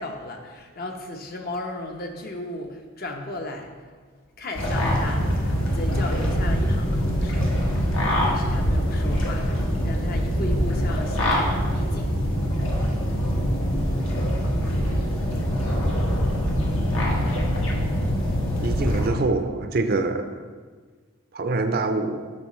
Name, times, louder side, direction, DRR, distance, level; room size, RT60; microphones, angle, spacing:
voice 1, 0.0-4.0 4.4-5.4 5.7-7.6 8.2-12.1, left 2 dB, 45° left, 3 dB, 0.9 m, -35 dB
sound 1, 4.5-19.1, equal, 70° left, 1.4 m, -24 dB
voice 2, 18.6-20.3 21.3-22.2, right 3 dB, 45° right, 7 dB, 0.5 m, -25 dB
10.5 x 6.7 x 3.1 m, 1.5 s
head